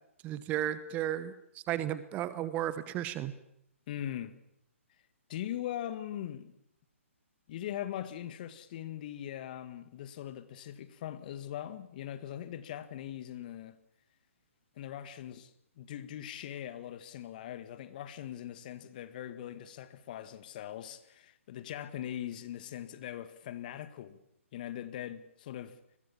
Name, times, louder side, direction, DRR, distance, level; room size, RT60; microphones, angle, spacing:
voice 1, 0.2-3.3, right 12 dB, 20° right, 1.1 m, -34 dB
voice 2, 3.9-4.4 5.3-6.5 7.5-13.8 14.8-15.5 15.8-24.2 24.5-25.8, left 11 dB, 35° left, 1.8 m, -41 dB
28.5 x 21.5 x 7.2 m
figure-of-eight pair, 135°, 7 cm